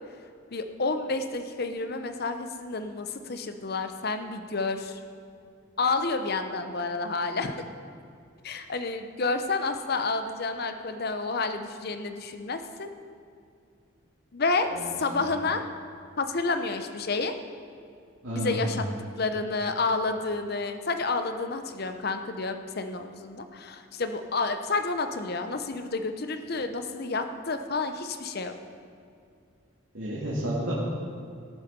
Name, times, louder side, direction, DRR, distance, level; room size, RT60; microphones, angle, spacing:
voice 1, 0.5-5.0 5.8-7.6 8.4-12.9 14.3-14.7 15.0-15.7 16.2-17.4 18.3-18.8 19.2-28.5, left 3 dB, 50° left, 8 dB, 0.8 m, -30 dB
voice 2, 18.2-18.7 29.9-30.8, right 1 dB, 70° right, -7 dB, 2.3 m, -30 dB
18.0 x 7.3 x 5.3 m, 2.3 s
head